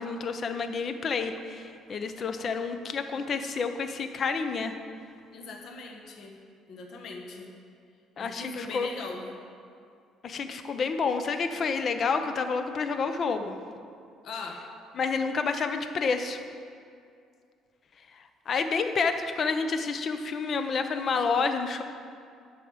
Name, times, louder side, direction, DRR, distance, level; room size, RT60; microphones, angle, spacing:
voice 1, 0.0-4.7 8.2-8.9 10.2-13.6 15.0-16.4 18.5-21.8, left 5 dB, 35° left, 8 dB, 0.6 m, -29 dB
voice 2, 5.3-6.4 6.7-7.5 8.2-9.2 14.2-14.6, left 3 dB, 50° left, 2 dB, 1.1 m, -40 dB
10.5 x 4.9 x 7.1 m, 2.3 s
cardioid pair, 165°, 0 cm